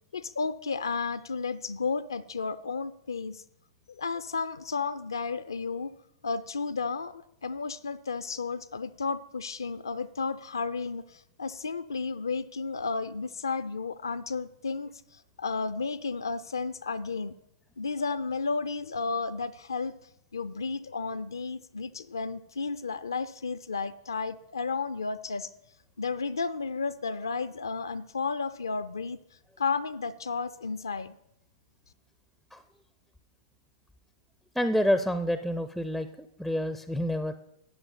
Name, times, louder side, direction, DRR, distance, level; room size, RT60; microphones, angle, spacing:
voice 1, 0.1-3.4 3.9-5.9 6.2-17.3 17.8-19.9 20.3-25.5 26.0-29.2 29.6-31.2, left 4 dB, 70° left, 15 dB, 0.5 m, -33 dB
voice 2, 34.5-37.3, equal, ahead, 11 dB, 0.4 m, -28 dB
12.5 x 8.8 x 4.1 m, 0.80 s
figure-of-eight pair, 100°, 2 cm